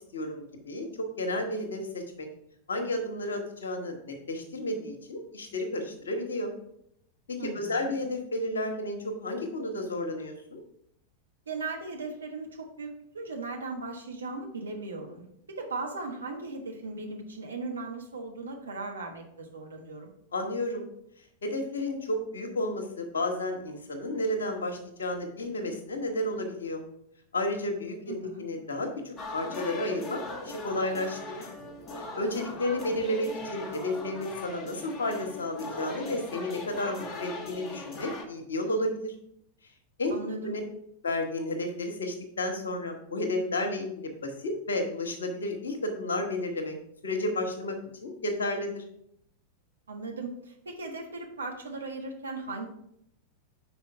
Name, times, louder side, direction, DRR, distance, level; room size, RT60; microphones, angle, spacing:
voice 1, 0.1-0.9 1.2-2.3 2.7-6.5 7.4-10.6 20.3-20.8 21.4-26.8 27.3-31.5 32.0-39.1 40.0-40.1 40.4-40.6 41.0-46.7 47.0-47.7 48.0-48.8, left 1 dB, 70° left, 4 dB, 1.2 m, -32 dB
voice 2, 7.4-7.9 11.5-20.1 28.1-28.5 32.8-33.0 40.1-40.6 49.9-52.7, right 3 dB, 70° right, 2 dB, 1.2 m, -38 dB
sound 1, 29.2-38.2, left 2 dB, 30° left, 1.0 m, -40 dB
5.6 x 4.4 x 5.6 m, 0.74 s
figure-of-eight pair, 90°, 0 cm